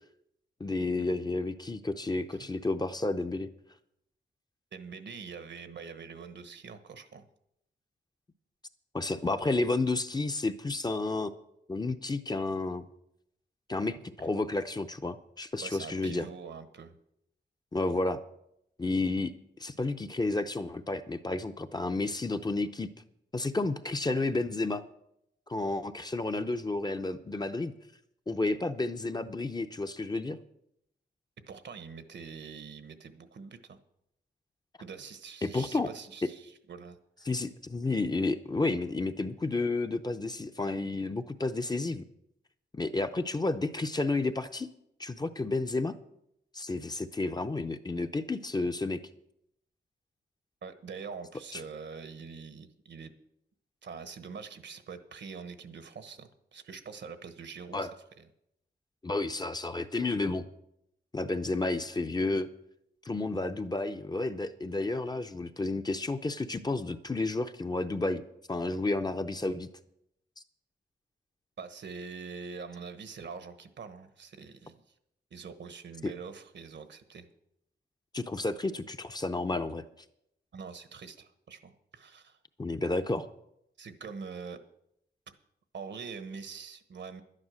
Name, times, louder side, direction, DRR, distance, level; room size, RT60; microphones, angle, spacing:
voice 1, 0.6-3.5 8.9-11.3 11.7-12.9 13.7-16.3 17.7-18.2 18.8-19.3 19.6-22.9 23.3-24.8 25.5-27.7 28.3-30.4 35.4-35.9 37.3-42.0 42.7-44.7 45.0-46.0 46.5-49.0 51.5-51.6 57.7-57.9 59.0-60.5 61.1-62.5 63.0-68.2 68.5-69.7 76.0-76.1 78.1-79.8 82.6-83.3, left 2 dB, 20° left, 8 dB, 0.6 m, -31 dB
voice 2, 4.7-7.2 15.6-16.9 31.4-33.8 34.8-37.3 50.6-53.1 53.8-57.9 58.2-58.3 71.6-74.8 75.3-77.3 80.5-82.4 83.8-84.6 85.7-87.2, right 5 dB, 75° right, 11 dB, 1.1 m, -44 dB
11.5 x 9.8 x 6.3 m, 0.78 s
wide cardioid pair, 145°, 19 cm